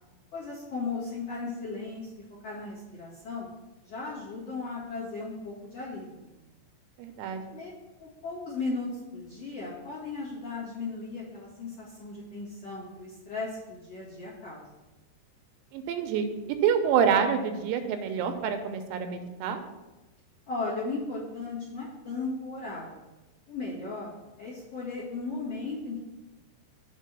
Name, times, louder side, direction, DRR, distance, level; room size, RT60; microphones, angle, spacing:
voice 1, 0.3-3.5 3.8-6.3 7.5-7.7 8.0-14.7 20.5-23.0 23.5-24.1 24.4-26.0, left 3 dB, 60° left, -9 dB, 1.7 m, -36 dB
voice 2, 7.0-7.4 15.7-16.3 16.6-19.6, right 7 dB, 85° right, 7 dB, 3.4 m, -27 dB
7.4 x 4.1 x 6.7 m, 1.1 s
omnidirectional pair, 6.0 m